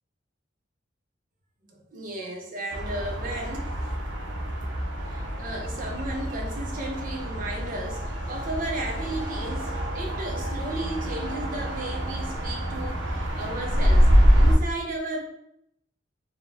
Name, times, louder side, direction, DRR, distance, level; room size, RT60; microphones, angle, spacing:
voice 1, 1.6-3.7 5.1-15.2, right 2 dB, 45° right, 0 dB, 0.8 m, -34 dB
sound 1, 2.7-14.5, equal, 75° right, 0.8 m, -25 dB
4.4 x 2.3 x 3.4 m, 0.74 s
head